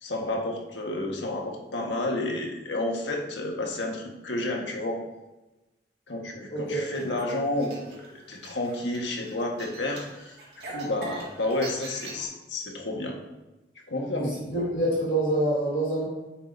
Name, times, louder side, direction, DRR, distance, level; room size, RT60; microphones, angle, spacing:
voice 1, 0.0-5.0 6.1-10.3 10.7-13.2 13.9-14.3, left 2 dB, 85° left, 0 dB, 1.5 m, -30 dB
voice 2, 6.5-6.8 14.1-16.1, right 1 dB, 45° left, -6 dB, 2.7 m, -26 dB
sound 1, 6.7-12.2, right 3 dB, 65° right, 2.1 m, -43 dB
9.6 x 7.4 x 2.7 m, 1.1 s
head